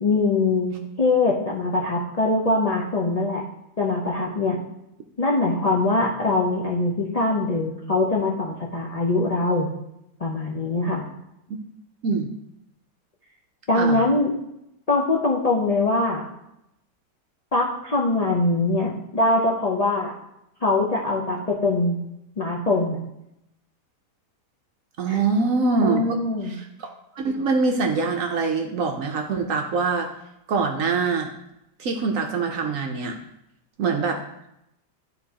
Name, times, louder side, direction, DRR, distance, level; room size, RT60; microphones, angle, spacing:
voice 1, 0.0-3.4 3.8-4.6 5.2-9.7 10.2-11.0 13.7-14.3 14.9-16.2 17.5-20.1 20.6-22.0 22.4-23.0 25.1-25.2 25.8-26.6, left 2 dB, 65° left, -2 dB, 0.3 m, -22 dB
voice 2, 25.0-30.1 30.5-31.3 31.8-33.2 33.8-34.2, right 4 dB, 65° right, 3 dB, 0.9 m, -24 dB
11.5 x 3.8 x 2.8 m, 0.83 s
omnidirectional pair, 1.9 m